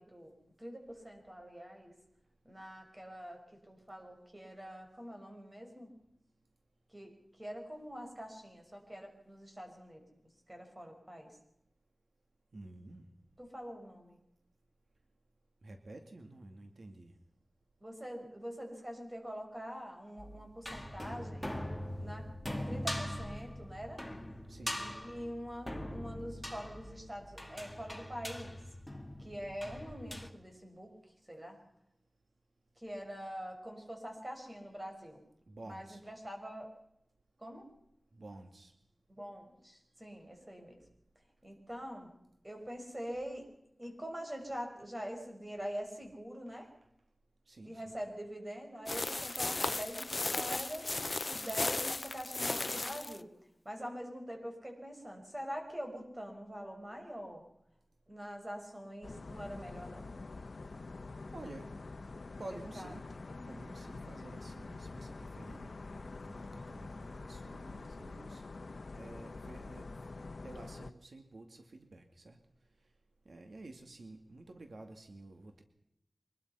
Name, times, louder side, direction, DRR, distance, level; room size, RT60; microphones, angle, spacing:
voice 1, 0.0-2.0 2.4-5.9 6.9-10.1 10.5-11.4 13.4-14.2 17.8-21.5 22.0-22.3 22.7-24.0 24.8-28.6 29.2-30.9 31.3-31.6 32.8-35.2 35.6-36.7 37.4-37.7 39.1-40.8 41.4-42.1 42.4-43.5 43.8-46.7 47.6-50.9 51.2-53.3 53.6-57.4 58.1-60.1 62.8-62.9 63.3-63.5, equal, 25° right, 3 dB, 5.5 m, -44 dB
voice 2, 12.5-13.0 15.6-17.1 24.5-24.8 35.5-36.0 38.1-38.7 47.5-48.0 61.3-61.7 62.4-63.1 63.5-68.4 68.9-70.0 70.4-72.4 73.3-75.6, right 2 dB, 80° right, 5 dB, 2.3 m, -51 dB
sound 1, 20.2-30.3, left 1 dB, 5° left, 2.0 m, -42 dB
sound 2, 48.9-53.2, left 2 dB, 45° left, 0.7 m, -36 dB
sound 3, 59.0-70.9, left 3 dB, 75° left, 1.0 m, -46 dB
24.0 x 20.5 x 5.7 m, 0.81 s
wide cardioid pair, 80°, 0 cm